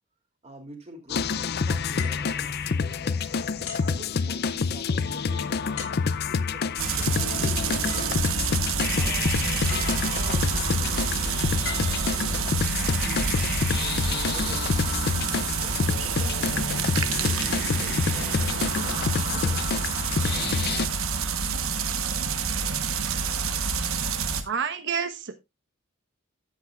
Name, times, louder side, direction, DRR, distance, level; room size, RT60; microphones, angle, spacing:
voice 1, 0.4-3.2 3.8-8.2 9.0-13.7 14.3-14.9 15.5-19.0 19.3-19.9, right 1 dB, 30° right, 3 dB, 2.8 m, -46 dB
sound 1, 1.1-20.9, left 5 dB, 50° left, 0.5 m, -27 dB
sound 2, 2.0-3.2 3.7-4.8 5.8-6.5 7.5-7.6 7.9-8.7 9.7-10.5 11.6-12.8 13.5-13.7, left 7 dB, 85° left, 3.0 m, -40 dB
sound 3, 6.8-24.4, right 5 dB, 75° right, 1.1 m, -28 dB
voice 2, 24.4-25.3, right 6 dB, 60° right, 10 dB, 1.1 m, -29 dB
13.0 x 8.3 x 2.4 m, 0.22 s
head